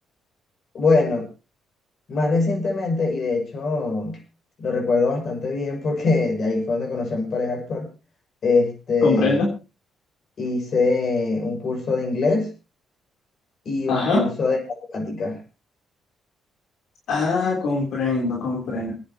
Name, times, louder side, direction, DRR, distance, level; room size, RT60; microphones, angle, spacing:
voice 1, 0.7-1.3 2.1-4.2 4.6-7.9 8.4-9.4 10.4-12.5 13.6-14.6 14.9-15.4, left 3 dB, 50° left, 3 dB, 6.6 m, -23 dB
voice 2, 9.0-9.5 13.9-14.3 17.1-18.9, left 3 dB, 75° left, 0 dB, 3.3 m, -22 dB
27.5 x 9.6 x 2.9 m, 0.28 s
cardioid pair, 90°, 0 cm